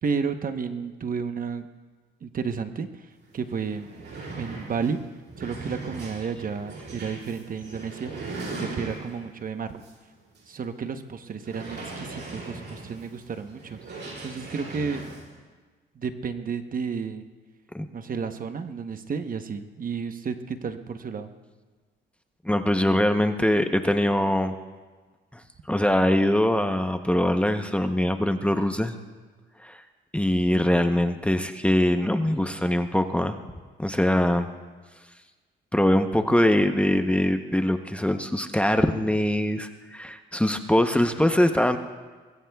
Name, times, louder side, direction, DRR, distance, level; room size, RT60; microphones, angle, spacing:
voice 1, 0.0-1.7 2.2-3.9 4.4-5.0 5.4-8.1 8.6-9.8 10.5-15.0 15.9-17.3 17.9-21.3, right 6 dB, 45° right, 8 dB, 1.0 m, -32 dB
sound 1, 3.2-3.3 3.6-9.3 9.8-9.9 10.3-10.4 11.4-15.2, right 3 dB, 65° right, 6.7 m, -39 dB
voice 2, 22.4-24.5 25.3-25.4 25.7-28.9 29.6-29.8 30.1-33.3 33.8-34.5 35.7-41.8, left 1 dB, 5° left, 6 dB, 0.8 m, -23 dB
24.0 x 21.5 x 2.3 m, 1.4 s
cardioid pair, 90°, 20 cm